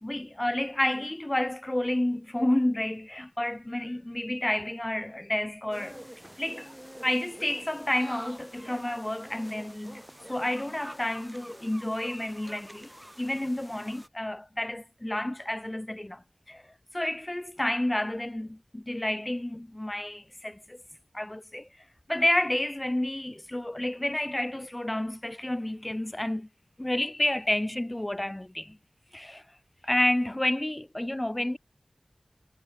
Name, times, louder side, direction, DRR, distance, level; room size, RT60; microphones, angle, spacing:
voice 1, 0.0-6.0 6.4-6.8 7.0-10.0 10.3-12.9 13.2-20.8 21.1-21.7 22.1-26.5 26.8-28.8 29.1-29.5 29.8-31.6, left 1 dB, 25° left, 0.8 m, -30 dB
sound 1, 5.7-14.1, equal, 10° right, 3.7 m, -46 dB
wide cardioid pair, 45°, 0 cm